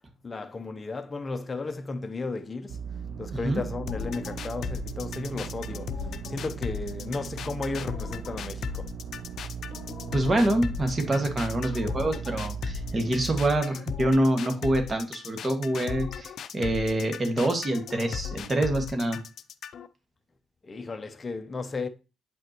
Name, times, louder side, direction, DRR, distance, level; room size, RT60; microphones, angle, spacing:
voice 1, 0.2-2.8 3.2-5.9 6.3-8.9 20.6-21.9, left 3 dB, 30° left, 0.7 m, -34 dB
sound 1, 2.7-13.6, right 7 dB, 75° right, 0.7 m, -38 dB
voice 2, 3.3-3.6 10.1-19.2, right 1 dB, 30° right, 1.8 m, -26 dB
sound 2, 3.9-19.9, left 8 dB, 60° left, 0.5 m, -36 dB
8.5 x 5.5 x 3.0 m
cardioid pair, 90°, 0 cm